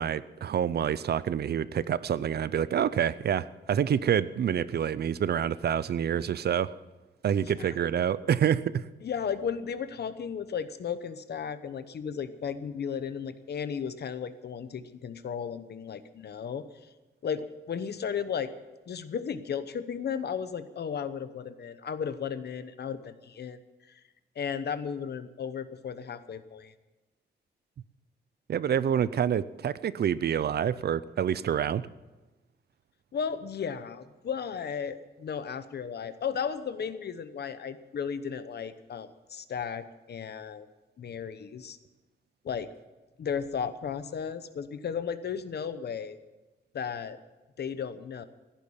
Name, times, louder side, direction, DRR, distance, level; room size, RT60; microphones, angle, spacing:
voice 1, 0.0-6.7 7.2-8.9 28.5-31.9, right 9 dB, 60° right, 17 dB, 0.5 m, -27 dB
voice 2, 7.4-7.7 9.0-16.7 17.2-18.6 18.9-23.6 23.9-24.0 24.4-26.7 33.1-40.7 41.0-41.8 42.4-42.7 43.2-46.2 46.7-47.2 47.6-48.2, left 7 dB, 65° left, 12 dB, 0.9 m, -35 dB
15.5 x 10.5 x 7.2 m, 1.1 s
wide cardioid pair, 180°, 19 cm